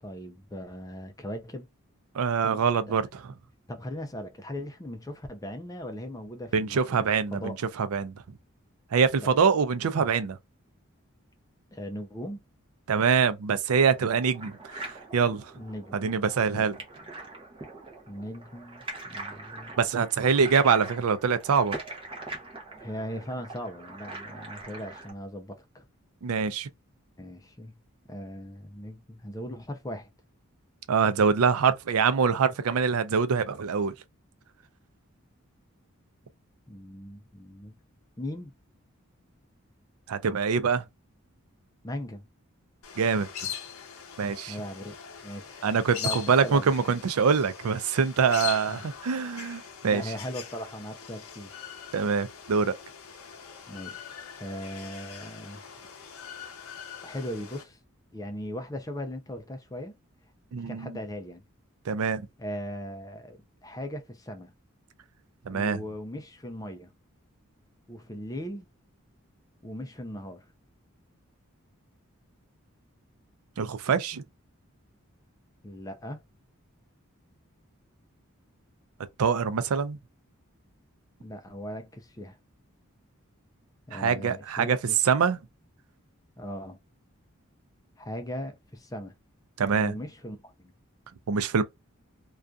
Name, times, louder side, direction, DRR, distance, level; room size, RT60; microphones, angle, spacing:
voice 1, 0.0-1.7 2.4-2.7 3.7-7.6 9.2-9.4 11.7-12.4 15.6-16.0 16.5-16.7 18.1-19.8 22.8-25.9 27.2-27.8 28.1-30.1 36.7-37.8 38.2-38.5 41.8-42.3 44.5-44.9 45.2-45.7 46.0-46.7 48.4-48.8 49.9-51.6 53.7-55.6 57.0-57.8 58.1-60.0 60.7-61.4 62.4-64.5 65.5-66.9 67.9-68.7 69.6-70.5 75.6-76.2 81.2-82.4 83.9-85.0 86.4-86.8 88.0-89.1 89.8-90.7, equal, 15° left, 0.4 m, -39 dB
voice 2, 2.1-3.3 6.5-8.1 8.9-10.4 12.9-14.8 15.1-15.5 15.9-16.8 19.8-21.8 26.2-26.7 30.9-33.9 40.1-40.8 43.0-43.5 44.2-44.6 45.6-50.0 51.9-52.7 60.5-61.0 61.9-62.2 65.5-65.8 73.6-74.2 79.2-80.0 83.9-84.8 85.0-85.4 89.6-89.9 91.3-91.6, right 6 dB, 90° right, 0.4 m, -24 dB
sound 1, 13.7-25.1, right 2 dB, 25° right, 0.7 m, -42 dB
sound 2, 42.8-57.6, left 8 dB, 80° left, 0.6 m, -41 dB
2.6 x 2.3 x 2.3 m
head